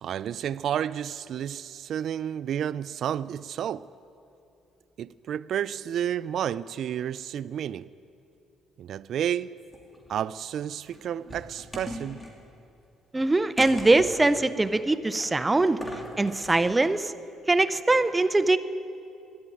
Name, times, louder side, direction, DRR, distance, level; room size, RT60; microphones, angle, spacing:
voice 1, 0.0-3.9 5.0-7.9 8.8-9.6 10.1-12.2, right 9 dB, 60° right, 0.3 m, -31 dB
sound 1, 9.6-10.1 10.9-12.3 13.6-14.3 15.7-16.5, equal, 5° left, 2.6 m, -39 dB
voice 2, 13.1-15.8 16.2-17.1 17.5-18.6, right 2 dB, 15° right, 0.6 m, -22 dB
12.5 x 11.0 x 9.2 m
cardioid pair, 105°, 0 cm